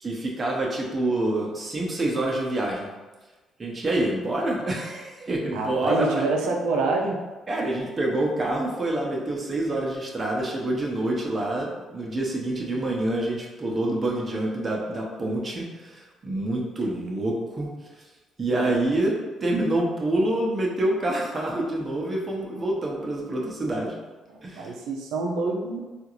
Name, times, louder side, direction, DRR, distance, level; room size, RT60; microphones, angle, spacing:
voice 1, 0.0-2.9 3.6-6.3 7.5-17.7 18.4-23.9 24.4-24.7, right 1 dB, 35° right, -2 dB, 0.8 m, -27 dB
voice 2, 5.5-7.2 24.3-25.8, right 3 dB, 85° right, 1 dB, 0.5 m, -27 dB
3.6 x 2.5 x 3.0 m, 1.2 s
supercardioid pair, 70°, 0 cm